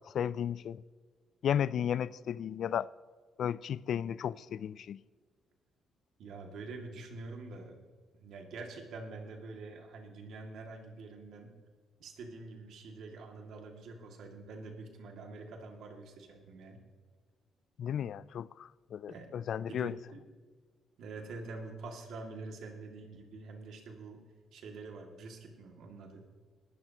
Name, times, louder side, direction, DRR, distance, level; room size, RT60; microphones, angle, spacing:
voice 1, 0.2-0.8 1.4-2.9 3.4-5.0 17.8-19.9, left 9 dB, 65° left, 0.3 m, -34 dB
voice 2, 6.2-7.8 8.1-11.5 12.0-16.8 19.1-19.4 19.7-20.2 21.0-24.2 24.5-26.2, right 3 dB, 75° right, 2.2 m, -46 dB
20.0 x 12.5 x 2.9 m
cardioid pair, 90°, 0 cm